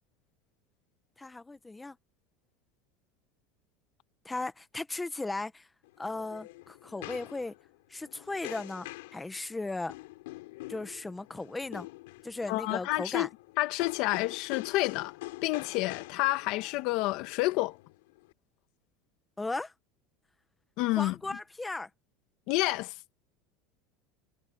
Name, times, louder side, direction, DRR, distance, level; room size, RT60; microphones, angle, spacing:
voice 1, 1.2-2.0 4.2-5.7 6.0-7.5 7.9-8.9 9.1-9.9 10.7-11.9 12.2-13.3 19.4-19.7 21.0-21.9, left 2 dB, 10° left, 1.4 m, -36 dB
sound 1, 5.8-18.3, left 21 dB, 85° left, 4.5 m, -45 dB
voice 2, 12.5-13.3 13.6-15.2 15.4-17.8 20.8-21.1 22.5-22.9, left 19 dB, 55° left, 1.7 m, -29 dB
supercardioid pair, 145°, 0 cm